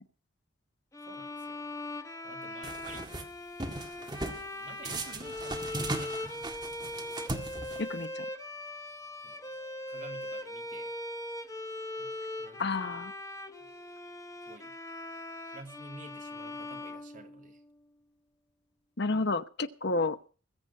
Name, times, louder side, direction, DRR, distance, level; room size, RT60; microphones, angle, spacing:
sound 1, 0.9-17.8, left 1 dB, 15° left, 1.1 m, -40 dB
voice 1, 1.0-1.7 2.2-3.1 4.2-6.3 9.2-9.5 9.9-10.9 12.0-12.7 13.6-13.7 14.5-14.7 15.5-17.6, right 3 dB, 40° right, 4 dB, 2.5 m, -51 dB
sound 2, 2.6-3.2 3.6-4.4 4.8-8.0, right 2 dB, 20° right, 1.8 m, -38 dB
voice 2, 7.8-8.3 12.6-13.1 19.0-20.2, left 3 dB, 55° left, 12 dB, 0.9 m, -30 dB
21.0 x 8.0 x 5.4 m, 0.37 s
head